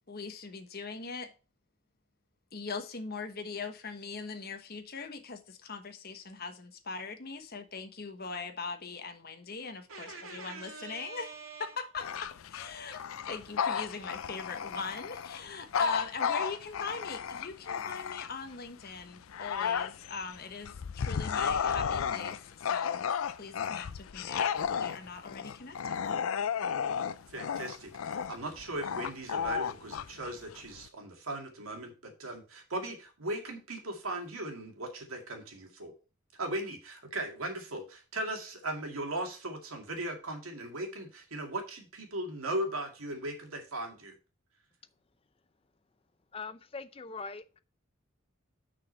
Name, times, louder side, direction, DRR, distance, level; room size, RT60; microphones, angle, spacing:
voice 1, 0.1-1.3 2.5-11.3 11.6-23.0 23.4-26.0, left 4 dB, 45° left, 1.2 m, -40 dB
voice 2, 9.9-11.7 27.3-35.9 36.4-44.1, right 1 dB, 85° right, 2.3 m, -38 dB
Bark / Growling, 12.0-18.5 19.0-30.9, left 7 dB, 75° left, 0.4 m, -33 dB
voice 3, 46.3-47.4, left 4 dB, 25° left, 0.5 m, -41 dB
6.2 x 6.2 x 5.5 m
head